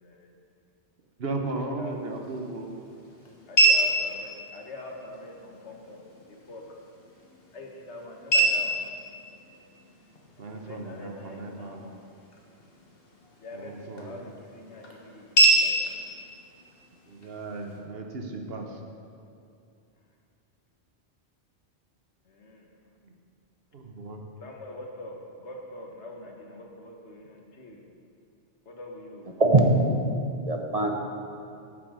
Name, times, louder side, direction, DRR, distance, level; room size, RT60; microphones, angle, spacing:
voice 1, 1.2-2.8 10.4-11.8 13.5-14.2 17.1-18.8 23.0-23.1 23.7-24.2, right 2 dB, 60° right, 3 dB, 1.2 m, -36 dB
sound 1, 1.8-17.8, right 2 dB, 55° left, 1.5 m, -29 dB
voice 2, 3.5-6.0 6.5-6.6 7.5-8.9 10.5-11.9 13.4-15.9 22.4-22.6 24.4-25.1 25.4-27.8 28.7-29.2, left 2 dB, 80° left, 1 dB, 1.6 m, -43 dB
voice 3, 29.4-29.9 30.5-30.9, right 2 dB, 35° right, 2 dB, 0.9 m, -21 dB
9.7 x 7.5 x 6.3 m, 2.6 s
omnidirectional pair, 1.1 m